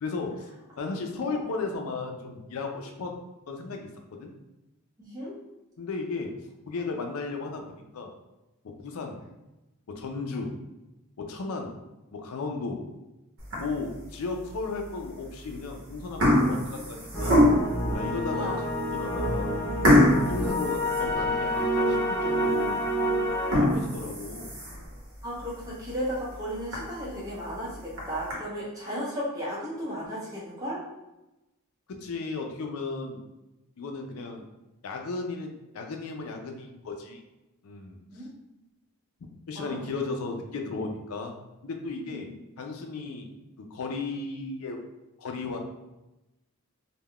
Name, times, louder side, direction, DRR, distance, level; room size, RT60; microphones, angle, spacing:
voice 1, 0.0-0.5 0.8-3.2 3.5-4.3 5.8-6.4 6.7-8.1 8.8-9.2 9.9-10.5 11.2-11.7 12.1-12.8 13.6-17.4 17.9-18.5 18.9-19.5 20.3-22.8 23.6-24.5 31.9-33.2 33.8-34.5 34.8-37.2 37.6-38.0 39.5-41.4 41.6-42.3 42.6-43.3 43.6-44.8 45.2-45.6, left 3 dB, 75° left, 3 dB, 0.4 m, -35 dB
voice 2, 5.0-5.4 18.3-18.6 25.2-30.8 38.1-38.3 39.5-39.9 42.1-42.3, equal, 15° right, -7 dB, 0.8 m, -35 dB
sound 1, 13.4-13.9 14.5-14.6 15.5-15.7 16.0-17.8 18.5-18.6 18.9-19.0 19.8-21.6 22.0-22.1 22.6-22.7 23.3-24.9 25.4-25.5 25.9-26.0 26.3-26.4 26.7-26.8 27.7-28.3, left 1 dB, 65° right, 0.9 m, -24 dB
sound 2, 17.1-23.5, equal, 10° left, 0.4 m, -28 dB
3.5 x 2.2 x 2.3 m, 0.97 s
head